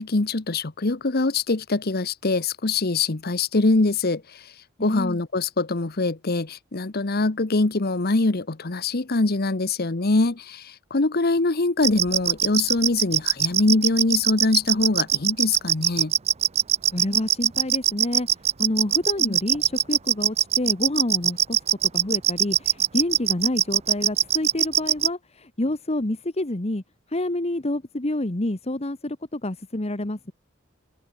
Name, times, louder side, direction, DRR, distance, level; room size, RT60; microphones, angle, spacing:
voice 1, 0.0-4.4 4.8-16.1 19.2-19.4, left 3 dB, 50° left, 1.1 m, -23 dB
voice 2, 4.8-5.2 16.9-18.3 18.6-26.8 27.1-30.3, left 1 dB, 30° left, 1.4 m, -28 dB
sound 1, 11.8-25.1, right 10 dB, 30° right, 0.6 m, -21 dB
head